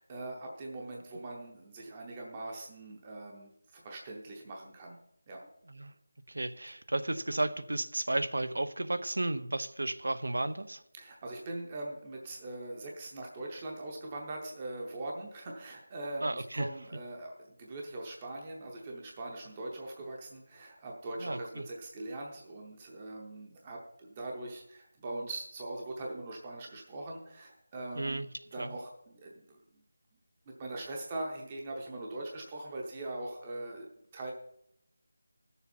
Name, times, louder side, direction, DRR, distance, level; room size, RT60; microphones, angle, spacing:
voice 1, 0.0-5.0 5.3-5.4 10.9-28.2 28.5-29.6 30.5-34.3, right 2 dB, 15° right, 0 dB, 0.7 m, -41 dB
voice 2, 6.3-10.8 16.2-16.7 21.2-21.6 27.9-28.3 28.6-28.7, right 2 dB, 85° right, 12 dB, 0.8 m, -33 dB
15.0 x 7.0 x 4.3 m, 0.77 s
figure-of-eight pair, 180°, 0 cm